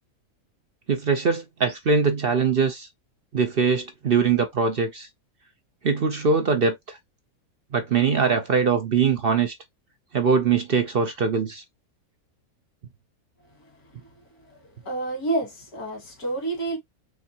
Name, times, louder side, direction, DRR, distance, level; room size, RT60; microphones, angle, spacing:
voice 1, 0.9-2.9 3.3-5.1 5.8-7.0 7.7-9.5 10.1-11.6, right 5 dB, 50° right, 0.8 m, -22 dB
voice 2, 14.8-16.8, right 2 dB, 90° left, 2.5 m, -28 dB
5.3 x 3.4 x 2.9 m
omnidirectional pair, 1.6 m